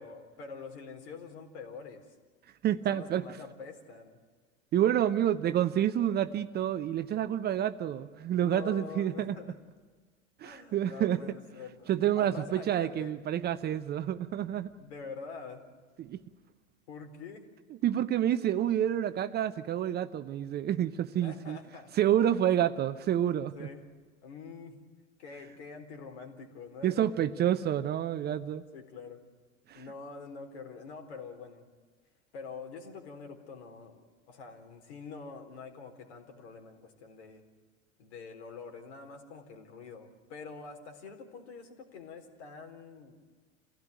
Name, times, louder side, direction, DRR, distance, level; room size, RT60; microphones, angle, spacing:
voice 1, 0.0-2.1 2.9-4.2 8.4-9.6 10.4-13.2 14.8-15.7 16.9-17.5 21.2-21.9 23.6-23.8 24.2-24.8 25.2-27.1 28.7-29.2 29.7-31.7 32.3-37.4 38.0-43.2, left 5 dB, 60° left, 5 dB, 4.0 m, -46 dB
voice 2, 2.6-3.2 4.7-9.4 10.4-11.2 11.9-14.7 16.0-16.2 17.8-21.6 21.9-23.7 26.8-28.6 29.7-29.8, right 11 dB, 25° right, 11 dB, 0.7 m, -28 dB
27.5 x 17.0 x 9.4 m, 1.5 s
figure-of-eight pair, 85°, 38 cm